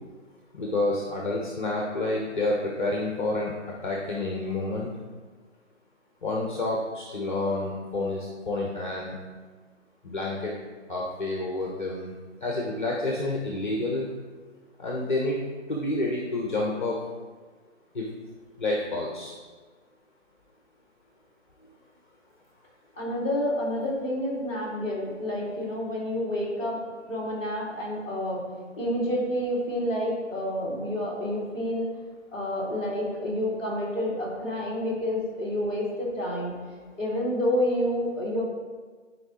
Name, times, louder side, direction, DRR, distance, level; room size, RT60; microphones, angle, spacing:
voice 1, 0.5-4.9 6.2-9.2 10.0-10.5 10.9-12.1 12.4-14.1 14.8-15.4 15.7-17.0 17.9-18.1 18.6-19.4, left 2 dB, 40° left, -2 dB, 1.0 m, -29 dB
voice 2, 23.0-26.8 27.1-28.4 28.7-31.9 32.3-36.6 37.0-38.4, left 1 dB, 15° left, -7 dB, 1.8 m, -29 dB
11.5 x 4.7 x 3.0 m, 1.4 s
figure-of-eight pair, 150°, 37 cm